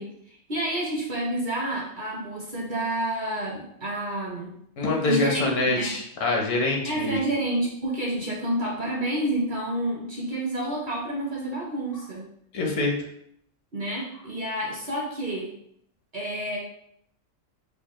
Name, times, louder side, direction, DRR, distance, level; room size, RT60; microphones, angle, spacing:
voice 1, 0.0-4.5 5.0-5.9 6.8-12.2 13.7-15.5 16.1-16.6, right 1 dB, 50° right, -2 dB, 0.6 m, -29 dB
voice 2, 4.8-7.2 12.5-12.9, left 2 dB, 75° left, 1 dB, 1.1 m, -25 dB
4.5 x 2.3 x 3.0 m, 0.72 s
omnidirectional pair, 1.3 m